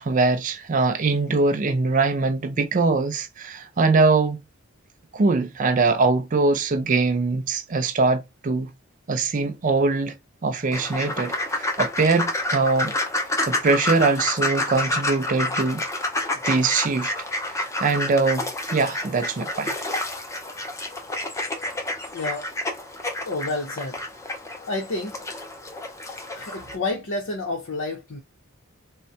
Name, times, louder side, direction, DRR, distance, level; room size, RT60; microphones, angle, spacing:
voice 1, 0.0-4.4 5.1-8.7 9.1-10.2 10.4-12.9 13.5-15.8 16.4-17.1 17.5-19.7, right 3 dB, 40° right, 0.4 m, -22 dB
sound 1, 10.7-26.8, left 1 dB, 15° left, 0.5 m, -29 dB
voice 2, 22.1-22.5 23.3-24.0 24.7-25.2 26.3-28.2, left 2 dB, 85° left, 0.8 m, -29 dB
3.6 x 2.1 x 2.7 m
head